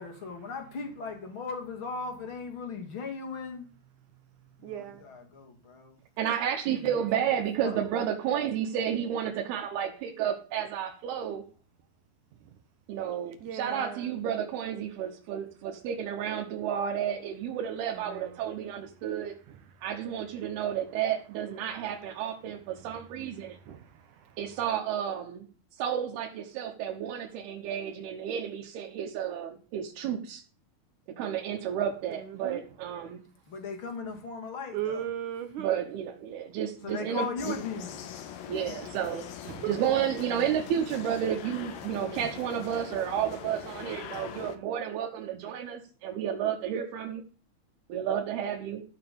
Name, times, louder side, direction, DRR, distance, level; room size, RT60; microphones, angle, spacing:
voice 1, 0.0-3.7 4.6-6.0 6.8-7.3 7.6-7.8 33.5-35.1 36.8-38.0 38.5-39.1, left 5 dB, 35° left, 2.9 m, -38 dB
voice 2, 4.6-5.0 7.1-7.2 13.4-14.2 17.9-18.4 19.5-19.6 23.7-24.4 32.1-32.6 34.7-35.8 39.4-39.8, right 10 dB, 70° right, 2.1 m, -37 dB
voice 3, 6.2-11.4 12.9-19.3 19.8-23.6 24.4-25.5 25.7-30.4 31.2-33.2 35.6-37.3 38.5-39.3 39.7-47.2 47.9-48.8, right 9 dB, 90° right, 3.1 m, -31 dB
sound 1, 37.4-44.6, left 9 dB, 70° left, 2.8 m, -42 dB
13.5 x 5.8 x 7.0 m
omnidirectional pair, 4.4 m